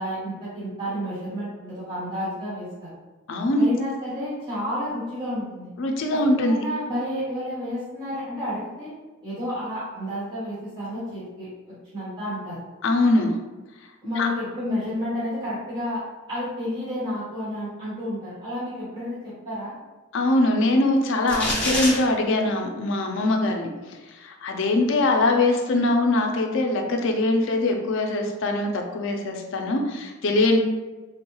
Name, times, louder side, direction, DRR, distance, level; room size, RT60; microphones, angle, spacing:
voice 1, 0.0-2.9 3.6-5.7 6.1-8.9 9.2-12.6 14.0-16.0 16.3-19.7, left 1 dB, 25° right, -11 dB, 1.2 m, -31 dB
voice 2, 3.3-3.7 5.8-6.6 12.8-13.4 14.2-14.3 20.1-30.6, left 2 dB, 65° left, 3 dB, 0.4 m, -22 dB
sound 1, 21.3-22.0, left 1 dB, 5° left, 0.6 m, -25 dB
3.5 x 2.3 x 3.0 m, 1.2 s
head